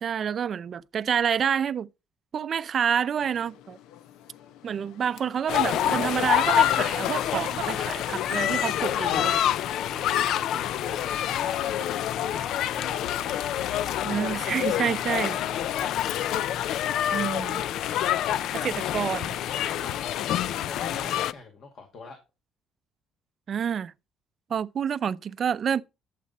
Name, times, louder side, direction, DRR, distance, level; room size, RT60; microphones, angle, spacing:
voice 1, 0.0-1.9 2.3-3.8 4.6-9.4 14.0-15.4 17.1-17.6 18.5-19.4 23.5-23.9 24.5-25.8, right 8 dB, 45° right, 0.5 m, -28 dB
Mechanisms, 3.2-21.3, left 10 dB, 85° left, 0.8 m, -46 dB
sound 1, 5.5-21.3, left 11 dB, 70° left, 0.4 m, -27 dB
Laughter, 5.7-8.4 11.2-12.0 12.3-12.8, right 12 dB, 75° right, 0.8 m, -39 dB
voice 2, 9.8-11.7 12.1-13.5 14.8-16.0 18.6-18.8 19.8-20.3 20.6-22.2, left 3 dB, 55° left, 2.3 m, -44 dB
12.0 x 7.6 x 4.2 m
cardioid pair, 125°, 0 cm